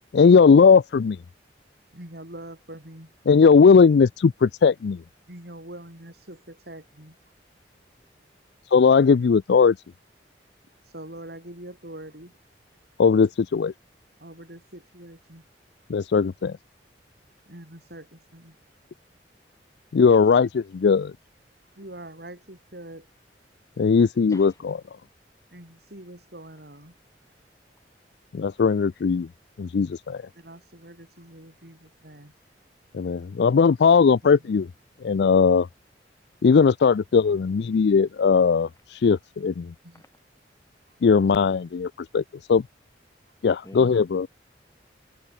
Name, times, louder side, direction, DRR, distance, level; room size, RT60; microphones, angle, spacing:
voice 1, 0.1-1.2 3.3-5.0 8.7-9.8 13.0-13.7 15.9-16.6 19.9-21.1 23.8-24.8 28.3-29.3 29.6-30.2 32.9-34.7 35.0-35.7 36.4-39.7 41.0-42.2 42.5-42.6 43.4-44.3, left 5 dB, 65° left, 0.4 m, -18 dB
voice 2, 1.9-3.1 5.3-7.2 10.8-12.3 14.2-15.4 17.5-18.6 21.8-23.1 25.5-27.0 30.4-32.3 34.2-34.4 39.8-40.0 40.9-41.0, right 1 dB, 60° right, 7.1 m, -44 dB
voice 3, 24.3-24.6 37.3-37.4 39.9-40.1 43.6-44.0, left 1 dB, 20° left, 3.1 m, -46 dB
head